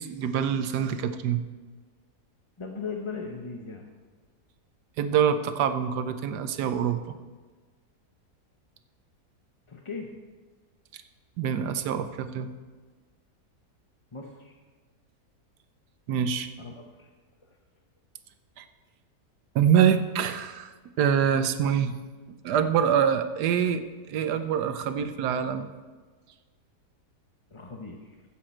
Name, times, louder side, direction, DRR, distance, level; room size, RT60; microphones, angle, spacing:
voice 1, 0.0-1.4 5.0-7.1 10.9-11.0 11.4-12.5 16.1-16.5 18.6-18.7 19.5-21.9 22.4-25.7, right 8 dB, 90° right, 10 dB, 1.3 m, -25 dB
voice 2, 2.6-3.9 9.7-10.1 14.1-14.5 16.6-17.1 17.4-17.6 27.5-28.2, left 4 dB, 25° left, 1 dB, 0.7 m, -38 dB
15.0 x 7.7 x 4.4 m, 1.4 s
omnidirectional pair, 1.7 m